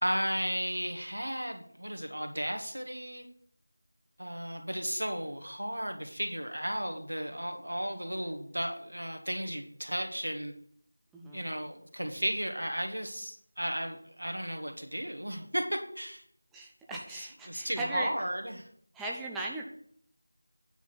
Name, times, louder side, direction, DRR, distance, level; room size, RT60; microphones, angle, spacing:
voice 1, 0.0-3.3 4.2-10.5 11.3-16.2 17.1-18.7, equal, 90° right, 5 dB, 1.8 m, -34 dB
voice 2, 11.1-11.4 16.5-18.1 18.9-19.6, right 2 dB, 5° right, -3 dB, 0.6 m, -38 dB
9.3 x 4.4 x 7.4 m, 0.62 s
figure-of-eight pair, 170°, 0 cm